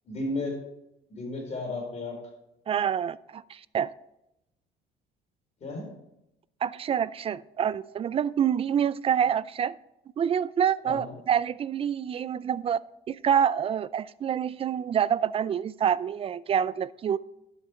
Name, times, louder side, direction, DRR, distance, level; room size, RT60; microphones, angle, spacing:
voice 1, 0.0-0.6 1.1-2.3 5.6-5.9 10.8-11.1, left 2 dB, 40° left, 1 dB, 4.2 m, -34 dB
voice 2, 2.7-3.9 6.6-9.8 10.2-12.8 13.1-17.2, right 8 dB, 35° right, 19 dB, 0.4 m, -27 dB
12.0 x 6.4 x 4.4 m, 0.86 s
cardioid pair, 110°, 17 cm